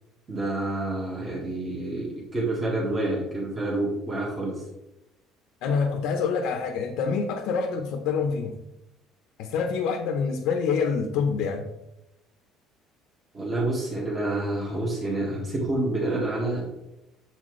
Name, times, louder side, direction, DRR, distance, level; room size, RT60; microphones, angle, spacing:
voice 1, 0.3-4.6 13.3-16.6, right 2 dB, 25° right, -4 dB, 1.4 m, -28 dB
voice 2, 5.6-8.5 9.4-11.7, left 5 dB, 75° left, 3 dB, 0.7 m, -26 dB
7.1 x 4.3 x 3.1 m, 0.90 s
cardioid pair, 150°, 0 cm